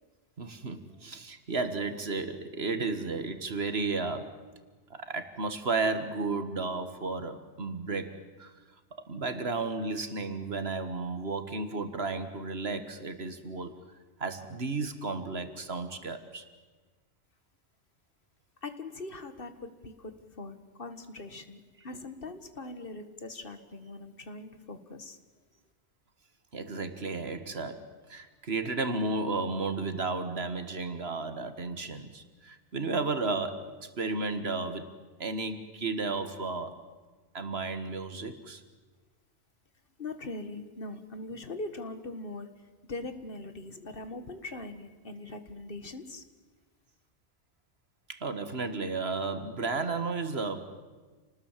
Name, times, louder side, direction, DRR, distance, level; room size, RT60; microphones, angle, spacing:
voice 1, 0.4-4.4 4.9-8.5 9.0-13.7 14.2-16.5 26.5-34.9 35.2-36.8 37.3-38.6 48.1-50.8, right 3 dB, 60° right, 9 dB, 2.0 m, -33 dB
voice 2, 18.6-25.2 40.0-42.5 42.9-46.2, left 2 dB, 50° left, 10 dB, 1.9 m, -41 dB
28.5 x 19.5 x 7.5 m, 1.4 s
omnidirectional pair, 1.2 m